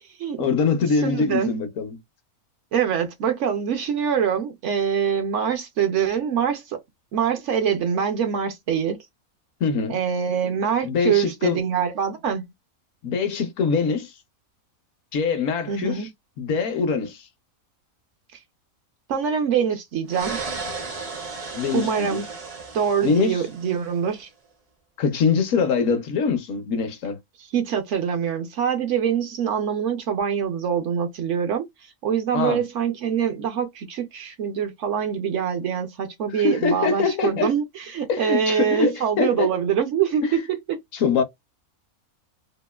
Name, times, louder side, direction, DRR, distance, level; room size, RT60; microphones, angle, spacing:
voice 1, 0.4-2.0 9.6-10.0 10.8-11.6 13.0-14.1 15.1-16.1 16.4-17.3 21.5-22.2 23.0-23.4 25.0-27.2 32.3-32.6 36.3-37.5 38.1-39.5 40.2-40.4 40.9-41.2, left 5 dB, 70° left, 1.0 m, -23 dB
voice 2, 1.0-1.5 2.7-6.8 7.1-9.0 9.9-12.4 15.7-16.1 19.1-20.4 21.7-22.3 22.7-24.3 27.5-40.8, right 8 dB, 70° right, 0.8 m, -24 dB
sound 1, 20.1-24.0, right 4 dB, 45° right, 0.5 m, -34 dB
2.8 x 2.4 x 2.2 m
omnidirectional pair, 1.5 m